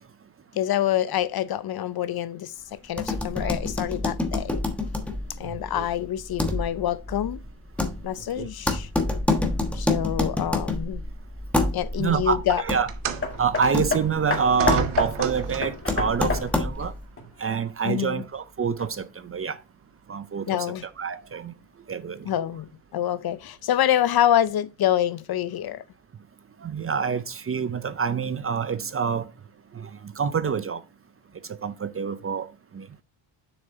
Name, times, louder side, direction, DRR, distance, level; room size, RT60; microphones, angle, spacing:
voice 1, 0.5-4.6 5.4-7.4 8.0-8.9 9.7-11.0 11.7-12.6 17.8-18.2 20.5-20.8 22.2-25.8, left 11 dB, 50° left, 0.5 m, -26 dB
sound 1, 2.9-17.0, left 2 dB, 5° left, 1.2 m, -28 dB
voice 2, 12.0-12.9 13.4-16.9 17.4-19.6 20.1-21.5 21.9-22.3 26.6-29.3 29.7-30.8 31.5-32.5 32.7-32.9, right 6 dB, 30° right, 0.5 m, -27 dB
sound 2, 12.9-15.9 16.9-17.1 17.9-18.0, right 7 dB, 85° right, 1.1 m, -33 dB
Hammer, 13.2-18.0 18.8-18.9, left 3 dB, 25° left, 1.9 m, -30 dB
7.2 x 6.5 x 2.7 m
cardioid pair, 130°, 48 cm